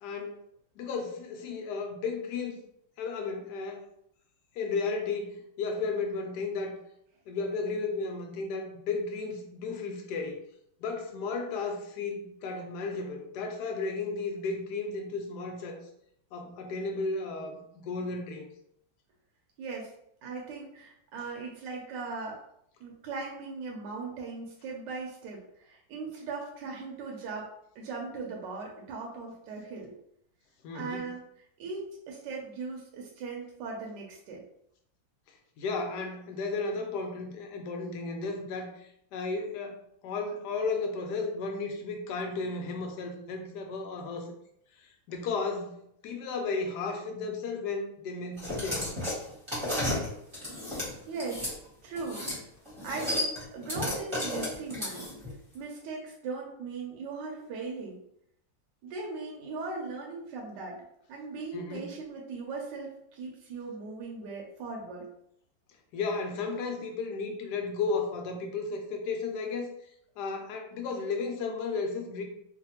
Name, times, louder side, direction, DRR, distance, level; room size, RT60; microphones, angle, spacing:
voice 1, 0.0-0.4 0.8-2.6 3.0-3.8 4.6-6.8 7.3-10.4 10.8-15.8 16.3-18.5 30.6-31.1 35.6-44.3 44.8-48.9 61.5-62.0 65.9-69.7 70.2-72.2, left 4 dB, 70° left, 3 dB, 1.0 m, -34 dB
voice 2, 19.6-19.9 20.2-22.4 22.8-29.9 30.7-31.2 31.6-34.4 51.1-51.4 51.8-52.2 52.8-55.0 55.5-58.0 58.8-65.0, right 4 dB, 75° right, -1 dB, 1.2 m, -39 dB
sound 1, 48.4-51.5 52.0-52.4 52.7-55.3, left 1 dB, 20° right, 0.7 m, -33 dB
3.2 x 2.1 x 2.8 m, 0.72 s
omnidirectional pair, 2.1 m